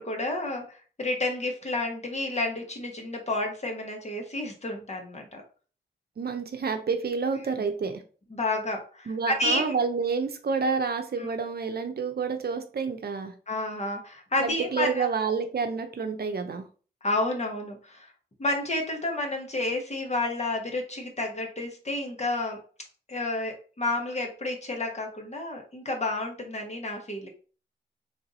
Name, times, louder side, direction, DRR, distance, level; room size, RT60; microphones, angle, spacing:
voice 1, 0.0-5.4 8.3-9.7 11.2-11.3 13.5-15.2 17.0-18.1 18.4-22.6 23.1-27.3, left 2 dB, 40° left, 2 dB, 1.3 m, -30 dB
voice 2, 6.2-8.0 9.1-13.3 14.4-16.6, right 5 dB, 60° right, 6 dB, 0.7 m, -29 dB
3.3 x 2.6 x 4.1 m, 0.38 s
cardioid pair, 60°, 18 cm